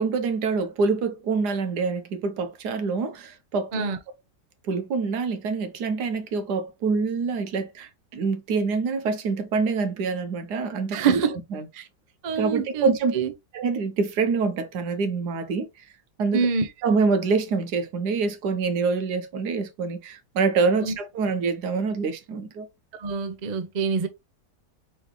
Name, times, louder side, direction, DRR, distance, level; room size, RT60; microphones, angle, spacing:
voice 1, 0.0-3.9 4.6-11.2 11.5-11.7 12.4-13.1 13.5-15.7 16.2-16.5 16.8-22.7, right 4 dB, 70° right, 1.4 m, -26 dB
voice 2, 10.9-11.3 11.7-11.8 12.2-13.3 16.3-16.7 20.8-21.0 23.0-24.1, right 6 dB, 90° right, 0.3 m, -25 dB
4.3 x 3.8 x 3.2 m
omnidirectional pair, 1.9 m